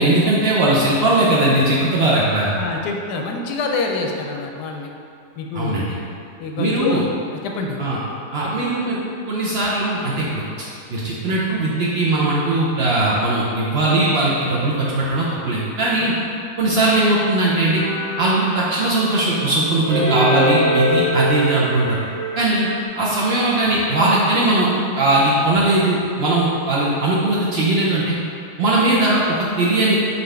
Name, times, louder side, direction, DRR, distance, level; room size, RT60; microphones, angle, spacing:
voice 1, 0.0-2.5 5.5-5.9 6.6-7.0 7.8-8.0 8.3-9.0 9.3-10.4 10.9-16.1 16.6-17.8 18.2-22.0 22.4-22.7 22.9-24.7 25.0-28.2 28.6-30.0, right 2 dB, 65° right, -6 dB, 0.6 m, -19 dB
voice 2, 2.6-4.9 5.4-5.9 6.4-7.1 7.4-7.8 8.4-8.7 16.0-16.1, left 3 dB, 90° left, 1 dB, 1.2 m, -26 dB
sound 1, 17.7-22.9, equal, 85° right, 1.8 m, -24 dB
4.1 x 3.7 x 3.4 m, 2.5 s
omnidirectional pair, 1.7 m